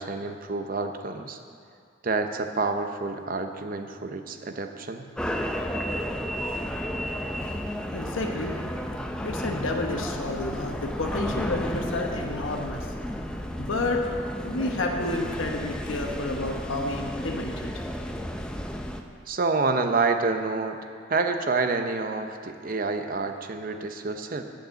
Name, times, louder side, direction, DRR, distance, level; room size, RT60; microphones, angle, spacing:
voice 1, 0.0-1.4 2.0-5.1 19.3-20.8 21.1-24.4, right 3 dB, 45° right, 6 dB, 0.7 m, -28 dB
sound 1, 5.2-19.0, equal, 5° left, 0.5 m, -32 dB
voice 2, 7.9-8.6 9.2-12.9 13.6-14.0 14.4-17.7, left 2 dB, 75° left, 2 dB, 1.1 m, -30 dB
11.0 x 6.5 x 7.6 m, 2.3 s
head